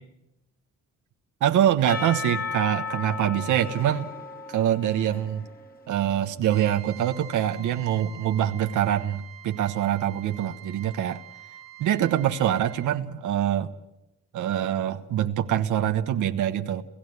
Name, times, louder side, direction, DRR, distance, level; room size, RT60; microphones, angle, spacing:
voice 1, 1.4-4.1 4.5-5.4 5.9-11.2 11.8-13.7 14.3-16.8, right 11 dB, 80° right, 8 dB, 1.3 m, -24 dB
Percussion / Church bell, 1.9-6.0, left 4 dB, 30° left, 2.2 m, -35 dB
Trumpet, 6.5-12.9, right 9 dB, 65° right, 2.6 m, -45 dB
28.5 x 15.5 x 9.6 m, 0.92 s
cardioid pair, 90°, 30 cm